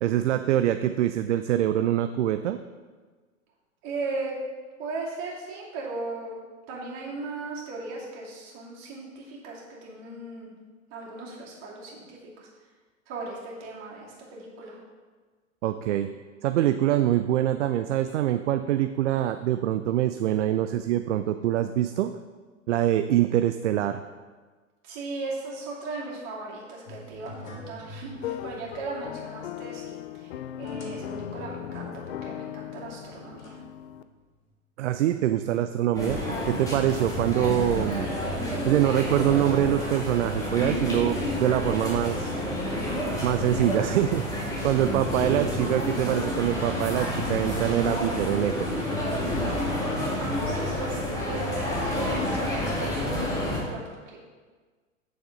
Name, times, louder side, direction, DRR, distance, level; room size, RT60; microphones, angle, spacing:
voice 1, 0.0-2.6 15.6-16.1 16.4-22.1 22.7-24.0 34.8-36.2 36.4-38.1 38.6-42.4 43.2-48.7, right 12 dB, 60° right, 9 dB, 0.5 m, -24 dB
voice 2, 3.8-4.3 4.8-6.4 6.7-10.5 10.9-12.5 13.1-14.8 24.8-30.3 30.6-31.9 32.2-33.6 45.1-45.3 50.2-54.2, right 3 dB, 40° right, -4 dB, 2.7 m, -37 dB
sound 1, 26.9-34.4, left 1 dB, 80° left, 1.6 m, -46 dB
sound 2, 28.1-34.0, left 10 dB, 55° left, 0.5 m, -38 dB
sound 3, 35.9-53.6, left 1 dB, 10° left, 2.2 m, -29 dB
8.5 x 6.9 x 3.7 m, 1.4 s
figure-of-eight pair, 100°, 40 cm